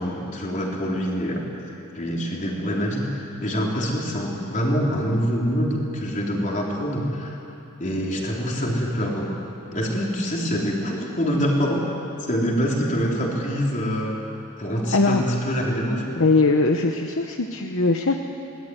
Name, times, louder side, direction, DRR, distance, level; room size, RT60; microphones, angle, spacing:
voice 1, 0.0-1.4 1.9-7.4 7.8-9.4 9.7-11.8 12.3-14.2 14.6-16.1, equal, 35° left, -2 dB, 3.9 m, -25 dB
voice 2, 14.9-15.2 16.2-18.2, left 3 dB, 65° left, 4 dB, 1.1 m, -20 dB
22.5 x 18.5 x 9.5 m, 2.7 s
head